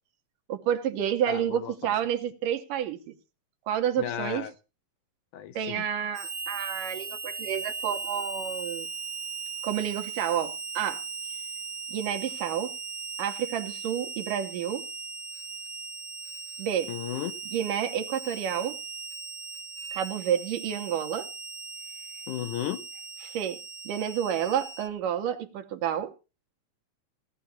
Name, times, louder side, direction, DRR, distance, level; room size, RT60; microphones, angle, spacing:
voice 1, 0.5-3.1 3.7-4.5 5.6-8.9 9.6-11.0 11.9-12.7 13.2-14.8 16.6-16.9 17.5-18.8 19.9-21.3 23.2-23.6 23.9-26.1, right 9 dB, 80° right, 2.8 m, -29 dB
voice 2, 1.3-1.9 4.0-4.5 5.3-5.8 16.9-17.4 22.3-22.8, left 11 dB, 75° left, 2.1 m, -34 dB
Harmonica, 6.1-24.9, right 4 dB, 40° right, 2.5 m, -38 dB
17.0 x 10.5 x 4.3 m
omnidirectional pair, 3.9 m